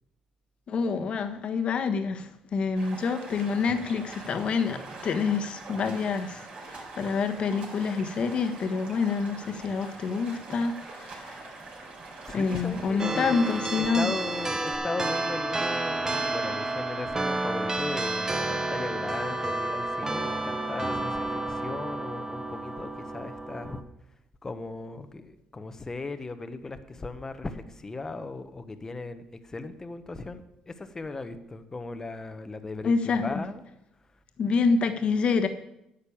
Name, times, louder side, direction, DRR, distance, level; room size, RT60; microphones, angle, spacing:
voice 1, 0.7-11.4 12.3-14.1 32.8-33.4 34.4-35.5, left 5 dB, 50° left, 7 dB, 1.4 m, -27 dB
Stream, 2.8-14.8, right 3 dB, 50° right, 4.0 m, -43 dB
voice 2, 12.2-23.8 24.4-33.6, left 3 dB, 20° left, 9 dB, 1.1 m, -37 dB
sound 1, 13.0-23.8, right 2 dB, 25° right, 1.1 m, -30 dB
10.5 x 6.6 x 8.7 m, 0.83 s
cardioid pair, 95°, 2 cm